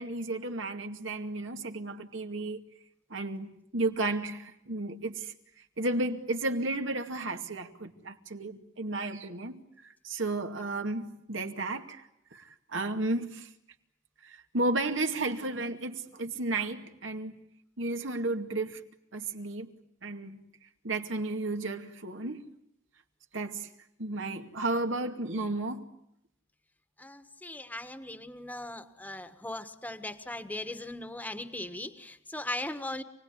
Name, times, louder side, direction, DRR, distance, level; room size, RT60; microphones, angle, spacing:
voice 1, 0.0-2.6 3.1-5.3 5.8-12.0 12.3-13.5 14.2-17.3 17.8-18.8 19.1-19.7 20.0-20.4 20.8-22.4 23.3-23.7 24.0-25.8, right 2 dB, 80° right, 2.3 m, -33 dB
voice 2, 27.0-33.0, left 1 dB, 10° left, 1.4 m, -39 dB
28.5 x 20.0 x 9.8 m
head